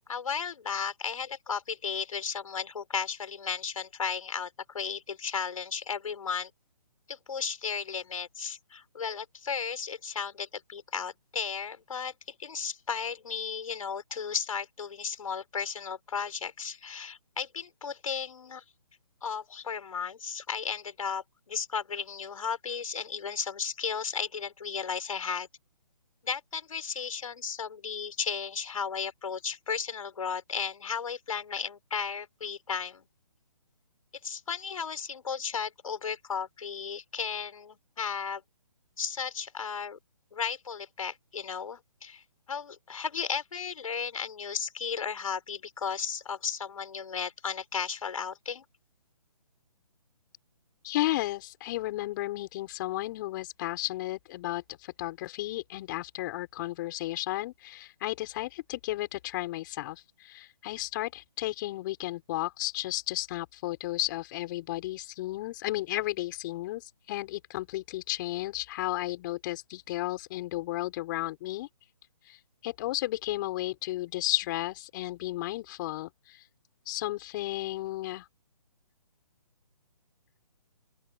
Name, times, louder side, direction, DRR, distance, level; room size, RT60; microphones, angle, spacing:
voice 1, 0.1-6.5 7.1-12.1 12.4-18.6 19.2-25.5 26.2-33.1 34.2-38.4 39.0-40.0 40.3-48.6, left 6 dB, 65° left, 5.6 m, -34 dB
voice 2, 50.8-71.7 72.2-72.4 72.6-76.4 76.8-78.3, left 17 dB, 35° left, 5.1 m, -33 dB
open air
hypercardioid pair, 145°, 19 cm